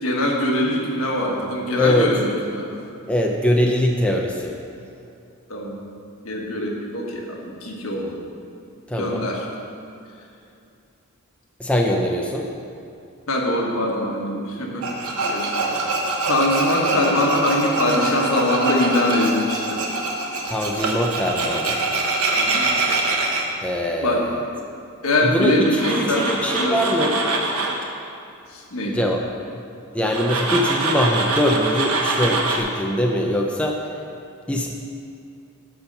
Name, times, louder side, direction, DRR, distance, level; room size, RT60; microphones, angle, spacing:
voice 1, 0.0-2.7 5.5-5.8 6.2-8.2 9.0-9.4 13.3-15.9 16.3-19.9 22.4-22.7 24.0-24.3 25.0-27.2 28.5-29.0, left 1 dB, 65° left, -1 dB, 1.5 m, -23 dB
voice 2, 1.8-2.1 3.1-4.5 8.9-9.3 11.6-12.5 20.5-21.8 23.6-24.3 25.2-27.1 28.9-29.2 29.5-29.6 29.9-33.8 34.5-34.7, left 1 dB, 5° left, 0 dB, 0.5 m, -22 dB
Tools, 14.8-23.4 25.6-27.8 30.1-32.6, right 3 dB, 85° right, 1.1 m, -24 dB
11.0 x 4.4 x 6.7 m, 2.6 s
head